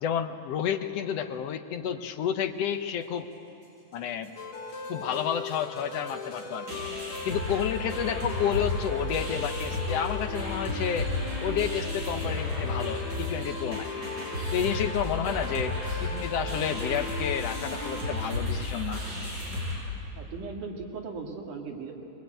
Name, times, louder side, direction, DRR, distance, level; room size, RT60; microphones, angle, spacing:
voice 1, 0.0-3.3 3.9-4.3 4.9-6.8 7.2-11.1 11.4-13.9 14.5-19.0, left 8 dB, 70° left, 7 dB, 1.6 m, -30 dB
sound 1, 4.2-4.3 4.5-4.9 5.1-5.2 5.4-19.8, left 2 dB, 30° right, 7.4 m, -33 dB
sound 2, 4.4-18.3, left 4 dB, 50° left, 2.6 m, -39 dB
voice 2, 20.2-21.9, right 4 dB, 75° right, 1 dB, 3.4 m, -38 dB
22.5 x 22.5 x 9.1 m, 2.9 s
omnidirectional pair, 3.7 m